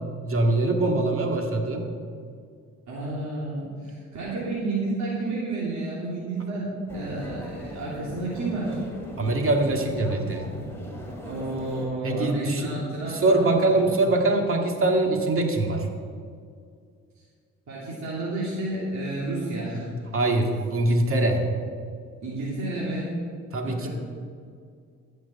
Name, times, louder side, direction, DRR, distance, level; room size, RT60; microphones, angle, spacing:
voice 1, 0.2-1.9 9.2-10.5 12.0-12.7 13.1-15.9 20.1-21.4 23.5-23.9, right 2 dB, 45° right, 3 dB, 2.0 m, -23 dB
voice 2, 2.9-8.8 11.2-13.4 13.7-13.9 17.7-19.8 22.2-23.2 23.6-23.9, right 2 dB, 70° right, -6 dB, 3.2 m, -31 dB
sound 1, 6.9-11.9, equal, 10° left, 3.0 m, -39 dB
14.5 x 6.5 x 7.1 m, 2.2 s
cardioid pair, 90°, 30 cm